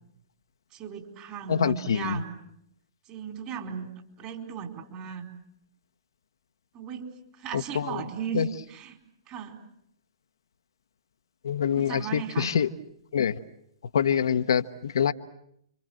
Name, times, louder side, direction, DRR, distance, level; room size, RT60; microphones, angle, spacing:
voice 1, 0.7-2.3 3.1-3.9 4.2-5.3 6.7-8.4 8.7-9.0 9.3-9.6 11.8-12.5, right 8 dB, 30° right, 4.5 m, -36 dB
voice 2, 1.5-2.2 7.5-8.0 8.3-8.5 11.4-12.7 13.1-13.4 13.9-15.1, left 8 dB, 70° left, 1.0 m, -25 dB
30.0 x 25.0 x 7.8 m
figure-of-eight pair, 115°, 2 cm